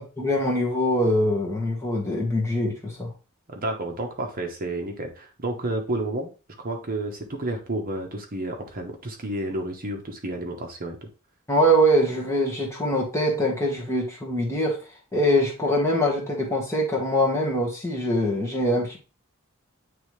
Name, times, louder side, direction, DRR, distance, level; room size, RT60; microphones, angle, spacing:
voice 1, 0.0-3.1 11.5-14.8 15.1-19.0, equal, 15° left, -2 dB, 1.3 m, -23 dB
voice 2, 3.5-6.3 6.6-11.0, right 1 dB, 40° right, 3 dB, 1.0 m, -31 dB
8.9 x 3.3 x 3.2 m, 0.33 s
head